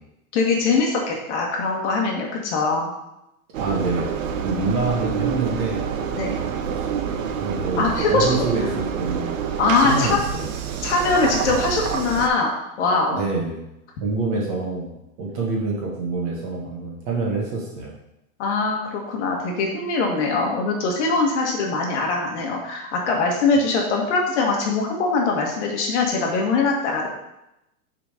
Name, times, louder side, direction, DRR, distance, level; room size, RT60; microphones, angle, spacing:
voice 1, 0.3-2.9 6.1-6.4 7.8-8.5 9.6-10.2 10.8-12.5 12.8-13.2 18.4-27.1, left 3 dB, 50° left, 0 dB, 1.7 m, -22 dB
Engine, 3.5-12.3, right 7 dB, 60° right, 0.8 m, -27 dB
voice 2, 3.6-4.1 4.4-5.9 7.1-9.3 9.8-10.5 13.1-13.6 14.0-18.0, right 3 dB, 35° right, -2 dB, 1.4 m, -26 dB
6.6 x 4.0 x 5.0 m, 0.87 s
supercardioid pair, 180°, 44 cm